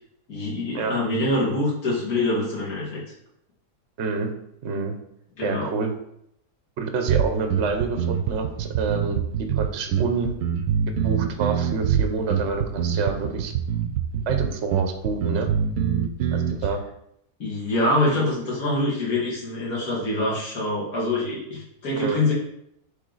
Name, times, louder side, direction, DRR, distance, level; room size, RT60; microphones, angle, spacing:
voice 1, 0.3-3.0 5.4-5.7 17.4-22.3, left 2 dB, 65° left, -6 dB, 2.7 m, -25 dB
voice 2, 4.0-4.3 4.6-5.0 5.4-5.9 6.8-9.2 9.5-10.3 11.0-13.5 14.3-15.5 16.3-16.8 22.0-22.2, right 4 dB, 50° right, 5 dB, 1.0 m, -27 dB
sound 1, 7.1-16.7, right 8 dB, 75° right, 1.1 m, -24 dB
10.0 x 3.7 x 4.0 m, 0.75 s
omnidirectional pair, 1.7 m